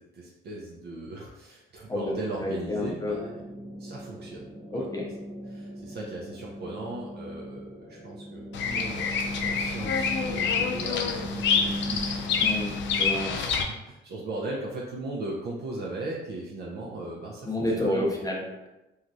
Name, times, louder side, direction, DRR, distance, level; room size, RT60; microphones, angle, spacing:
voice 1, 0.0-3.2 3.8-4.5 4.7-4.9 5.5-12.4 13.2-18.2, right 2 dB, 55° right, -3 dB, 0.5 m, -38 dB
voice 2, 2.4-3.3 4.7-5.1 12.4-13.4 17.4-18.7, left 1 dB, 20° left, -2 dB, 0.6 m, -30 dB
sound 1, 2.6-13.2, equal, 10° right, 0.9 m, -38 dB
Bird vocalization bird call bird song, 8.5-13.6, left 6 dB, 70° left, 0.4 m, -27 dB
3.0 x 2.4 x 2.6 m, 0.98 s
cardioid pair, 90°, 20 cm